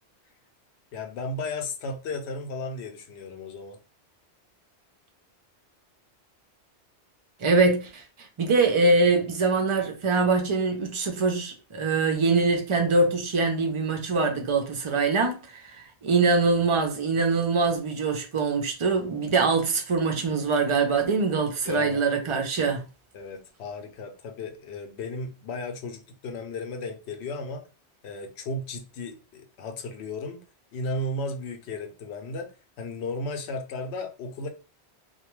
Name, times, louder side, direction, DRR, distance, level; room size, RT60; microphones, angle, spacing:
voice 1, 0.9-3.8 21.6-22.4 23.1-27.7 28.0-30.4 30.7-32.5 32.8-34.5, left 2 dB, 75° left, 0.8 m, -35 dB
voice 2, 7.4-8.0 8.4-22.9, right 3 dB, 45° right, 0.4 m, -23 dB
2.3 x 2.2 x 3.0 m
omnidirectional pair, 1.1 m